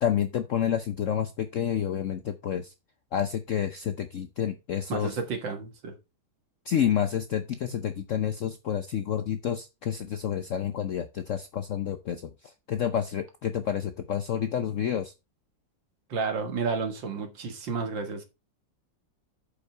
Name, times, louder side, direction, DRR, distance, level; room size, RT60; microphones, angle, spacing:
voice 1, 0.0-2.7 3.1-5.2 6.7-12.3 12.7-15.1, left 9 dB, 65° left, 0.7 m, -29 dB
voice 2, 4.9-5.9 16.1-18.2, right 4 dB, 75° right, 2.3 m, -31 dB
8.4 x 5.5 x 4.4 m
omnidirectional pair, 2.0 m